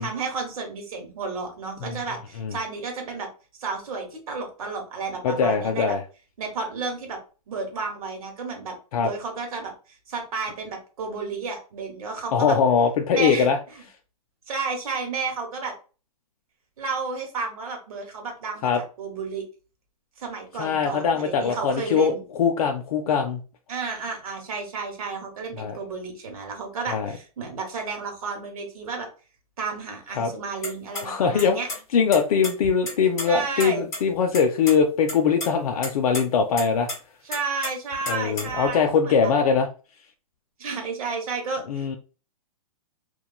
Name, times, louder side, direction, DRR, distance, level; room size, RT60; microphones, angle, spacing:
voice 1, 0.0-3.3 3.6-6.0 6.4-7.2 7.5-9.7 10.1-12.6 13.1-13.5 14.5-15.7 16.8-18.7 19.0-19.4 20.2-22.2 23.7-29.1 29.6-31.7 33.3-33.8 37.2-39.3 40.6-42.0, right 4 dB, 65° right, 2 dB, 1.1 m, -32 dB
voice 2, 5.2-6.0 8.9-9.1 12.3-13.6 18.6-18.8 20.6-23.4 25.6-25.8 26.9-27.1 30.2-30.3 31.0-31.6 31.9-36.9 38.1-39.7 41.7-42.0, left 6 dB, 65° left, 4 dB, 0.4 m, -22 dB
sound 1, 30.6-31.0 31.4-31.8 32.1-33.3 33.6-33.7 33.9-34.0 34.3-34.7 35.1-35.5 35.8-36.2 36.6-36.9 37.3-38.7, left 2 dB, 15° left, 0.9 m, -31 dB
3.0 x 2.3 x 2.2 m, 0.35 s
hypercardioid pair, 165°, 20 cm